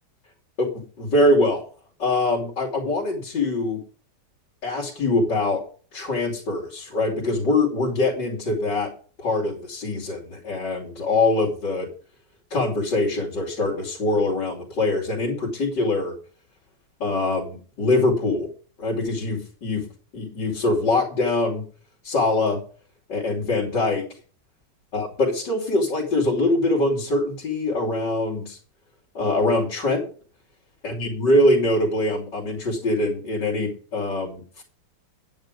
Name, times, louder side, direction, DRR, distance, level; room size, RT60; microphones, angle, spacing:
voice 1, 0.6-1.6 2.0-3.8 4.6-5.6 5.9-8.9 9.2-11.9 12.5-16.1 17.0-18.5 18.8-19.9 20.1-21.7 22.0-22.6 23.1-24.0 24.9-28.6 29.1-30.1 30.8-34.6, left 2 dB, 85° left, -3 dB, 3.4 m, -23 dB
10.0 x 9.4 x 5.1 m, 0.40 s
omnidirectional pair, 1.9 m